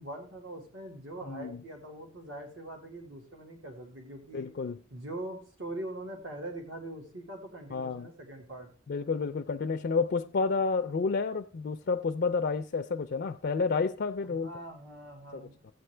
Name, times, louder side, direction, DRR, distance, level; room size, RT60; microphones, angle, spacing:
voice 1, 0.0-4.5 4.9-8.7 14.2-15.6, right 1 dB, 75° right, 1.8 m, -42 dB
voice 2, 1.3-1.6 4.3-4.8 7.7-8.1 8.9-14.5 15.3-15.4, left 4 dB, 55° left, 0.4 m, -30 dB
15.0 x 8.0 x 3.3 m
head